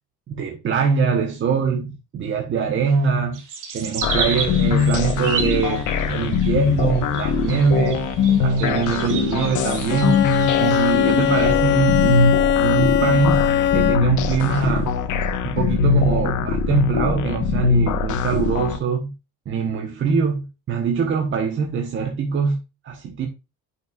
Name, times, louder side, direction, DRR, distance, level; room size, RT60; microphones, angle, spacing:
voice 1, 0.3-3.4 3.7-8.1 8.4-14.9 15.4-19.1 19.5-22.6 22.8-23.3, right 5 dB, 35° right, 1.1 m, -23 dB
sound 1, 3.3-11.5, right 6 dB, 70° right, 2.3 m, -32 dB
sound 2, 4.0-18.8, left 5 dB, 65° left, 1.2 m, -22 dB
Bowed string instrument, 9.9-14.3, left 10 dB, 35° left, 0.4 m, -20 dB
9.9 x 6.0 x 2.4 m
cardioid pair, 175°, 32 cm